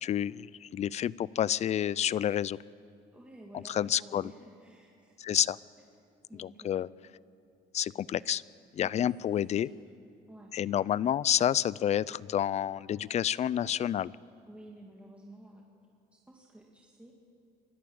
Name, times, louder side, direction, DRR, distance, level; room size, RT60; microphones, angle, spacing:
voice 1, 0.0-2.6 3.5-4.3 5.2-5.6 6.4-6.9 7.7-8.4 8.7-9.7 10.5-14.1, left 10 dB, 40° left, 22 dB, 0.4 m, -29 dB
voice 2, 3.1-5.2 6.3-6.9 8.8-9.8 10.3-10.5 14.5-15.6 16.1-17.1, right 1 dB, 5° right, -1 dB, 2.0 m, -52 dB
24.5 x 13.5 x 8.7 m, 2.4 s
cardioid pair, 110°, 17 cm